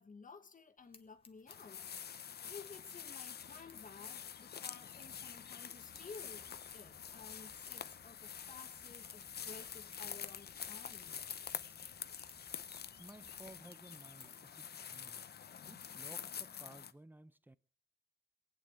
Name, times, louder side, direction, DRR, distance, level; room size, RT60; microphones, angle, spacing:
voice 1, 0.0-11.2, left 5 dB, 45° left, 1.3 m, -55 dB
sound 1, 0.8-14.7, left 3 dB, 30° left, 1.3 m, -66 dB
sound 2, 1.5-16.9, left 8 dB, 65° left, 0.7 m, -47 dB
sound 3, 5.9-13.6, right 3 dB, 60° right, 1.9 m, -69 dB
voice 2, 12.7-15.2 15.7-17.6, right 1 dB, 10° right, 0.6 m, -57 dB
22.5 x 9.0 x 4.7 m
wide cardioid pair, 90°, 18 cm